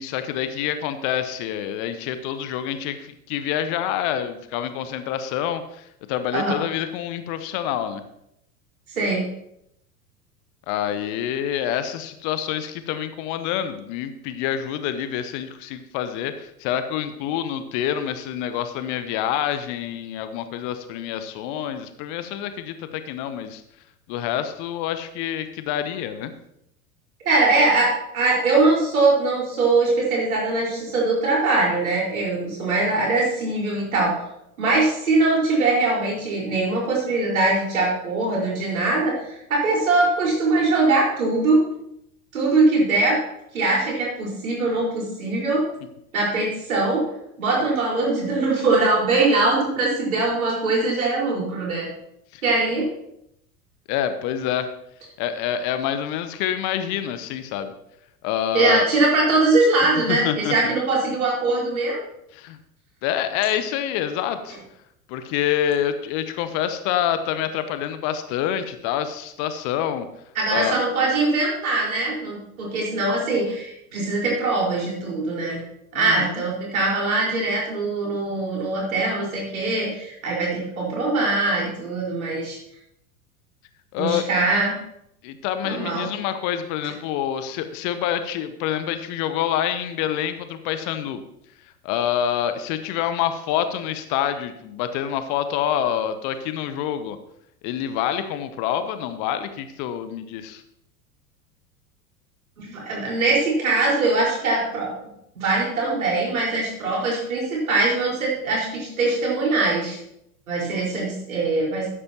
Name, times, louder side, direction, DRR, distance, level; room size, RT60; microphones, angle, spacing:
voice 1, 0.0-8.0 10.7-23.6 24.1-26.3 52.3-52.4 53.9-54.7 55.2-57.7 58.2-58.9 60.1-60.7 62.3-62.6 63.0-64.6 65.1-70.1 70.5-70.8 75.9-76.3 83.9-84.2 85.2-91.2 91.8-97.2 97.6-100.6, left 10 dB, 40° left, 10 dB, 0.9 m, -27 dB
voice 2, 8.9-9.2 27.2-34.1 34.6-41.6 42.3-43.2 43.5-45.6 46.1-47.0 47.4-51.9 52.4-52.9 58.5-62.0 70.3-75.6 75.9-82.6 84.0-84.8 85.6-86.1 102.6-105.0 105.3-110.0 110.5-111.9, right 3 dB, 70° right, -3 dB, 5.0 m, -22 dB
13.0 x 9.8 x 3.0 m, 0.78 s
figure-of-eight pair, 80°, 44 cm